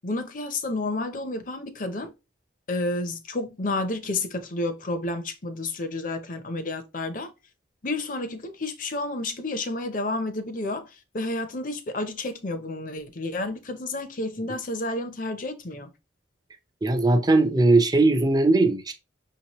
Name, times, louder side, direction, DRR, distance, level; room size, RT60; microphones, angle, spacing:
voice 1, 0.0-2.1 2.7-7.3 7.8-15.9, left 2 dB, 45° left, 0.6 m, -30 dB
voice 2, 16.8-18.9, right 2 dB, 20° right, 0.5 m, -19 dB
6.0 x 2.9 x 2.9 m
head